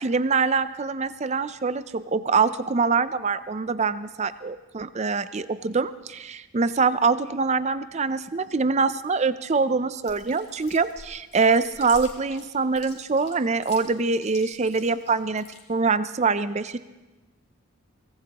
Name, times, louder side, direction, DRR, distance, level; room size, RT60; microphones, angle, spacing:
voice 1, 0.0-16.8, right 4 dB, 30° right, 14 dB, 0.4 m, -24 dB
Chewing mastication, 10.0-15.6, left 4 dB, 30° left, 2.4 m, -45 dB
23.5 x 18.5 x 2.9 m, 1.1 s
head